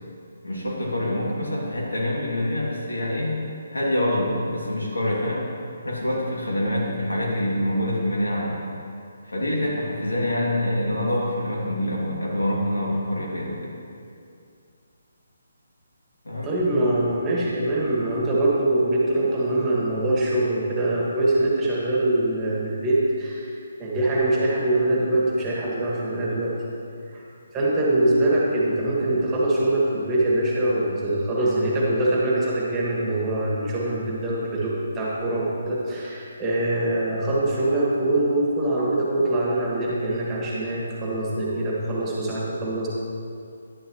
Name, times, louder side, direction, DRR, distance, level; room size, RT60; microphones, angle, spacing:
voice 1, 0.4-3.4 3.7-5.5 5.8-8.6 9.2-13.7 16.2-16.5, left 1 dB, 85° left, -4 dB, 2.6 m, -26 dB
voice 2, 16.4-26.5 27.1-27.2 27.5-42.9, right 1 dB, 15° right, -5 dB, 1.9 m, -23 dB
11.0 x 10.0 x 3.2 m, 2.4 s
figure-of-eight pair, 145°, 0 cm